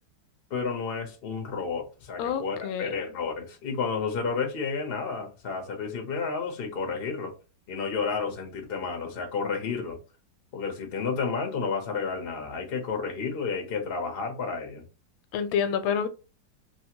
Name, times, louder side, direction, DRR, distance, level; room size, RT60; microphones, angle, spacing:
voice 1, 0.5-7.3 7.7-10.0 10.5-14.9, left 5 dB, 50° left, 0.7 m, -31 dB
voice 2, 2.2-3.1 15.3-16.1, left 7 dB, 90° left, 1.4 m, -28 dB
3.2 x 2.7 x 2.8 m
omnidirectional pair, 2.1 m